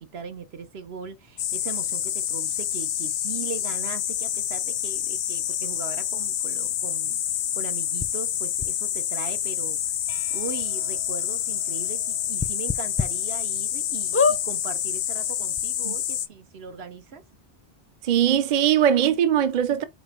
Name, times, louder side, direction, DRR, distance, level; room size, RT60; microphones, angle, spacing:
voice 1, 0.0-7.2 7.6-9.9 10.3-17.2, right 6 dB, 75° right, 1.2 m, -39 dB
sound 1, 1.4-16.3, left 10 dB, 80° left, 0.8 m, -28 dB
sound 2, 8.0-8.1 8.6-8.7 9.7-9.8 10.1-10.2 10.6-10.7 12.4-13.1 13.6-13.7 14.1-14.4 15.2-15.3 15.5-15.6, left 5 dB, 20° left, 0.4 m, -23 dB
voice 2, 18.0-19.8, right 10 dB, 50° right, 0.7 m, -20 dB
4.9 x 4.4 x 5.2 m
omnidirectional pair, 1.0 m